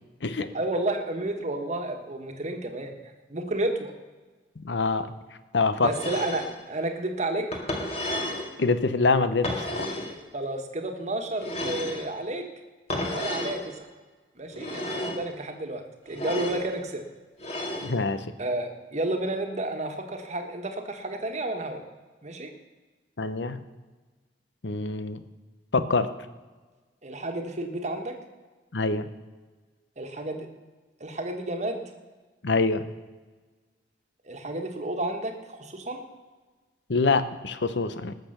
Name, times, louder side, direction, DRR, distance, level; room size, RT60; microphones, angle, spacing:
voice 1, 0.5-2.9 3.3-3.9 5.8-7.5 10.3-12.5 13.1-13.8 14.4-17.0 18.4-21.8 22.2-22.5 27.0-28.2 30.0-30.5 31.0-31.8 34.3-36.0, right 2 dB, 40° right, 4 dB, 1.4 m, -31 dB
voice 2, 4.6-5.1 5.5-5.9 8.6-9.9 17.8-18.2 23.2-23.6 24.6-25.2 25.7-26.1 28.7-29.1 32.4-32.9 36.9-38.1, left 3 dB, 75° left, 12 dB, 0.8 m, -25 dB
sound 1, 5.9-6.5 7.5-8.5 9.4-10.1 11.4-12.1 12.9-13.6 14.5-15.2 16.1-16.6 17.4-17.9, left 1 dB, 35° left, 2.0 m, -32 dB
19.0 x 6.7 x 6.6 m, 1.3 s
head